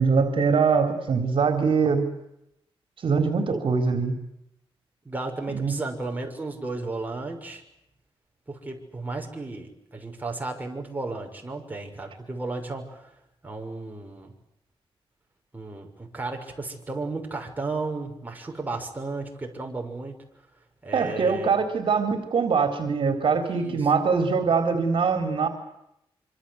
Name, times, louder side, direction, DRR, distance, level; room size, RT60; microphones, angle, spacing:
voice 1, 0.0-2.1 3.0-4.1 5.5-5.7 20.9-25.5, right 5 dB, 60° right, 6 dB, 3.9 m, -23 dB
voice 2, 5.0-7.6 8.5-13.2 13.4-14.3 15.5-20.2 20.8-21.5 23.5-23.9, right 3 dB, 15° right, 2 dB, 6.4 m, -34 dB
26.5 x 25.5 x 8.1 m, 0.81 s
wide cardioid pair, 110°, 10 cm